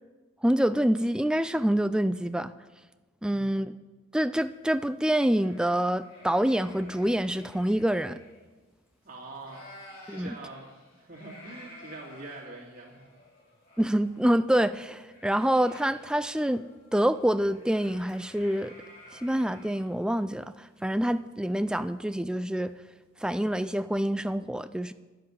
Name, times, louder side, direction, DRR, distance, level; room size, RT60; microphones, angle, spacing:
voice 1, 0.4-2.5 3.2-3.7 4.1-8.2 10.1-10.3 13.8-16.6 16.9-18.7 19.1-22.8 23.2-24.9, right 1 dB, 5° right, 12 dB, 0.3 m, -26 dB
voice 2, 3.2-3.6 9.0-9.8 10.1-10.7 11.0-13.1, right 2 dB, 45° right, -3 dB, 2.7 m, -44 dB
sound 1, 4.3-9.1 9.3-22.3, left 1 dB, 45° left, 3.3 m, -53 dB
11.0 x 7.8 x 9.7 m, 1.2 s
head